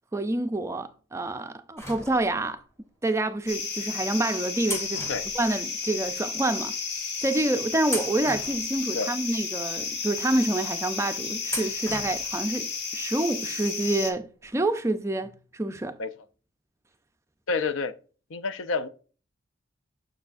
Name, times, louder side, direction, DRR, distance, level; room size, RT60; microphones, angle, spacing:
voice 1, 0.1-2.6 3.0-5.1 5.3-6.7 7.2-16.0, right 2 dB, 15° right, 0.3 m, -27 dB
sound 1, 1.8-2.6 3.4-3.6 4.6-6.1 6.4-6.5 7.2-7.4 7.8-9.2 9.7-9.8 11.5-12.4 12.7-12.8 14.0-14.1 14.4-14.5, left 1 dB, 15° left, 1.0 m, -37 dB
sound 2, 3.5-14.1, left 5 dB, 50° left, 1.2 m, -33 dB
voice 2, 17.5-17.9 18.3-18.9, left 4 dB, 75° left, 0.5 m, -28 dB
6.9 x 6.2 x 2.5 m
head